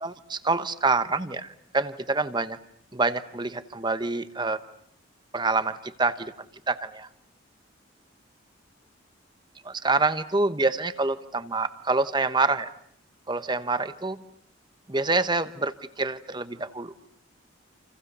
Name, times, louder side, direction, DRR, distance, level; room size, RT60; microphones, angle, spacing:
voice 1, 0.0-2.6 2.9-4.6 5.3-6.3 6.7-7.1 9.6-12.7 13.3-14.2 14.9-16.9, right 3 dB, 20° right, 12 dB, 1.1 m, -26 dB
29.0 x 29.0 x 6.9 m, 0.65 s
head